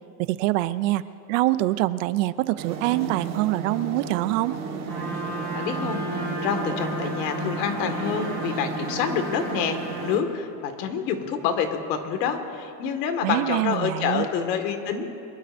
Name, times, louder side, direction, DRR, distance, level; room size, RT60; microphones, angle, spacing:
voice 1, 0.2-1.0 1.3-4.6 13.2-14.3, right 17 dB, 55° right, 15 dB, 0.5 m, -24 dB
sound 1, 2.6-10.2, right 4 dB, 30° right, 1.4 m, -33 dB
Trumpet, 4.9-10.1, right 1 dB, 5° left, 5.1 m, -34 dB
voice 2, 5.5-15.2, left 7 dB, 80° left, 6 dB, 2.0 m, -27 dB
24.0 x 22.5 x 2.6 m, 2.7 s
cardioid pair, 170°, 48 cm